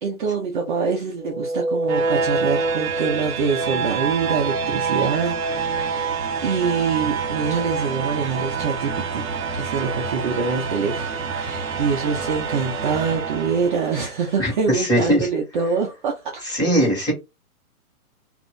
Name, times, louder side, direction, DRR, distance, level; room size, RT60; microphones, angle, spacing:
voice 1, 0.0-9.3 9.6-16.2, right 5 dB, 35° right, 0.6 m, -25 dB
sound 1, 1.2-14.2, right 4 dB, 65° right, 1.1 m, -26 dB
voice 2, 14.4-15.3 16.4-17.1, equal, 10° left, 1.5 m, -20 dB
2.5 x 2.5 x 3.5 m
hypercardioid pair, 150°, 44 cm